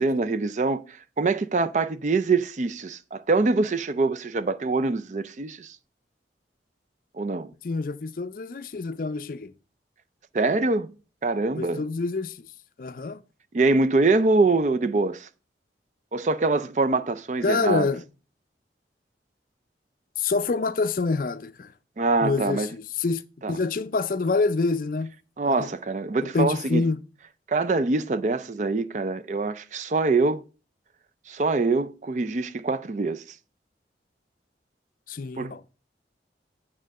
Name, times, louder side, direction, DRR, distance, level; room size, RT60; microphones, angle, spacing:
voice 1, 0.0-5.8 7.1-7.5 10.3-10.9 11.2-11.8 13.5-15.3 16.1-17.9 22.0-22.7 23.4-23.6 25.4-26.8 27.5-30.4 31.3-33.2 35.4-35.5, right 3 dB, 40° right, 0.4 m, -24 dB
voice 2, 7.6-9.5 11.6-12.5 12.8-13.2 17.4-18.0 20.2-21.7 22.2-23.2 23.5-25.1 25.4-25.7 26.2-27.0 35.1-35.6, left 4 dB, 50° left, 0.4 m, -27 dB
9.0 x 3.7 x 6.3 m
head